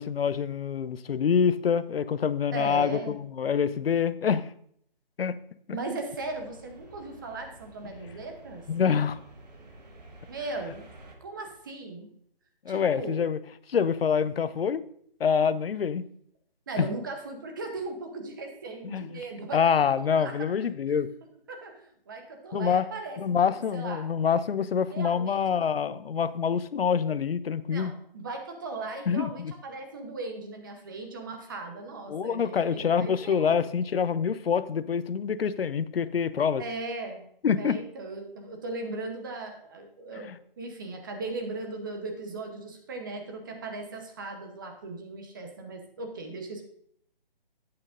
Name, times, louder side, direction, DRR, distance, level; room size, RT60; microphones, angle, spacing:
voice 1, 0.0-4.5 5.2-5.4 5.7-5.8 8.7-9.2 12.7-13.4 13.7-14.8 15.2-16.0 16.8-16.9 18.8-19.0 19.5-21.1 22.5-22.9 23.2-27.9 29.1-29.5 32.1-36.6 37.4-37.8 40.2-40.4, left 7 dB, 80° left, 15 dB, 0.6 m, -26 dB
voice 2, 2.5-3.2 5.7-8.6 10.3-10.9 11.2-12.1 12.7-13.2 16.7-19.6 19.9-20.4 21.5-23.2 23.7-24.1 24.9-25.5 27.7-33.6 36.6-37.2 37.6-40.3 40.6-46.7, right 3 dB, 20° right, 4 dB, 0.9 m, -38 dB
sound 1, 6.1-11.2, right 1 dB, 45° right, 1.6 m, -50 dB
10.5 x 8.7 x 2.5 m, 0.67 s
hypercardioid pair, 165°, 29 cm